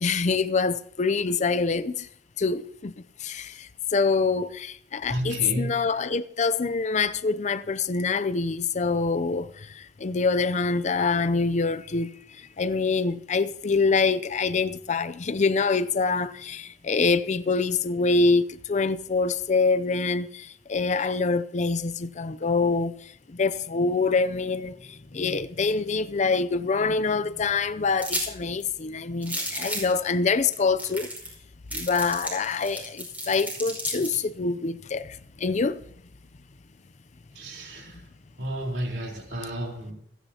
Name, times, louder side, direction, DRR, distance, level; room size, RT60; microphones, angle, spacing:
voice 1, 0.0-2.1 2.4-2.9 3.2-9.5 9.8-12.1 12.6-22.9 23.3-31.1 31.7-35.8, left 4 dB, 40° left, 0.5 m, -25 dB
voice 2, 5.1-5.7 37.4-38.0 38.4-39.9, right 1 dB, 75° right, 3.9 m, -31 dB
sound 1, 28.0-28.3 28.6-28.7 29.2-30.0 30.5-30.6 30.8-31.4 31.7-34.2, right 1 dB, 10° right, 5.3 m, -32 dB
28.0 x 10.0 x 2.9 m
head